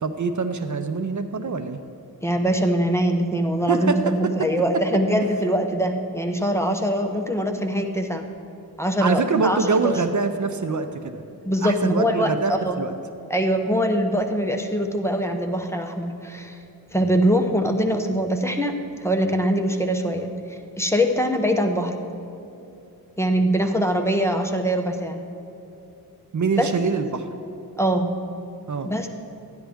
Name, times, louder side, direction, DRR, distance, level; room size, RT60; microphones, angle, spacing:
voice 1, 0.0-1.8 3.7-4.8 9.0-11.2 11.6-12.9 26.3-27.3 28.7-28.9, right 4 dB, 55° right, 8 dB, 0.5 m, -24 dB
voice 2, 2.2-8.2 8.8-9.9 11.4-12.8 13.3-16.6 16.9-21.9 23.2-25.2 26.6-26.7 27.8-28.1 28.8-29.1, equal, 5° left, 3 dB, 0.7 m, -23 dB
12.5 x 10.0 x 3.5 m, 2.8 s
wide cardioid pair, 110°, 37 cm